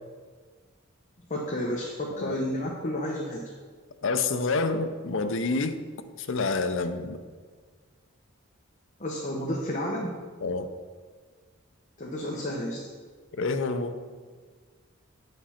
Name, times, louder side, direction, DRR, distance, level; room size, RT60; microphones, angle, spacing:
voice 1, 1.3-3.4 9.0-10.2 12.0-12.8, left 1 dB, 35° left, -2 dB, 1.0 m, -31 dB
voice 2, 4.0-5.8 6.2-7.2 10.4-10.7 13.3-14.0, left 3 dB, 65° left, 8 dB, 0.6 m, -28 dB
8.5 x 5.3 x 5.8 m, 1.5 s
head